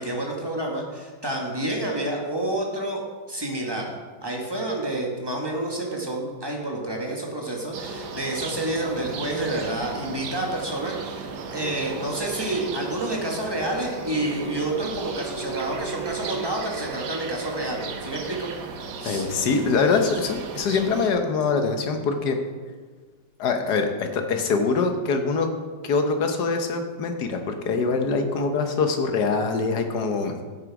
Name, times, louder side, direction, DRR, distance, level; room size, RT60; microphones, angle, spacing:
voice 1, 0.0-3.0 3.3-3.9 4.2-18.5 19.0-19.3, right 1 dB, 15° right, -1 dB, 1.5 m, -29 dB
sound 1, 7.7-21.1, right 5 dB, 65° right, 1.5 m, -35 dB
voice 2, 19.0-22.4 23.4-25.5 25.8-30.3, left 4 dB, 65° left, 6 dB, 1.5 m, -24 dB
10.5 x 8.0 x 4.8 m, 1.4 s
omnidirectional pair, 2.0 m